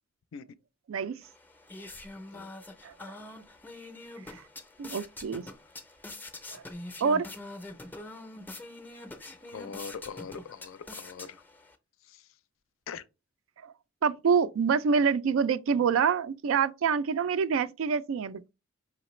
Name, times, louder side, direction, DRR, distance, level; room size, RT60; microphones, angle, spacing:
voice 1, 0.9-1.2 2.8-3.1 4.3-4.4 4.8-5.4 6.5-6.6 7.0-7.3 13.6-13.7 14.0-18.5, right 6 dB, 85° right, 0.4 m, -26 dB
sound 1, 1.2-11.7, left 2 dB, 10° left, 0.4 m, -45 dB
voice 2, 9.5-11.4 12.1-12.3 12.9-13.0, left 6 dB, 85° left, 0.4 m, -42 dB
5.0 x 3.1 x 3.0 m
head